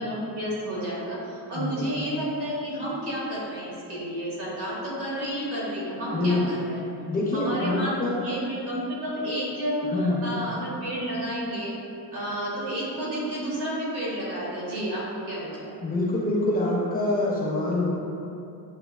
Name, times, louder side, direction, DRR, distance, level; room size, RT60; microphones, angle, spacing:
voice 1, 0.0-6.8 7.3-11.7 12.1-15.8, equal, 75° right, -7 dB, 1.4 m, -31 dB
voice 2, 1.5-1.9 6.1-6.5 7.0-8.3 9.9-10.3 15.8-17.9, left 2 dB, 25° left, -6 dB, 0.4 m, -25 dB
6.7 x 2.3 x 2.2 m, 2.7 s
cardioid pair, 175°, 40 cm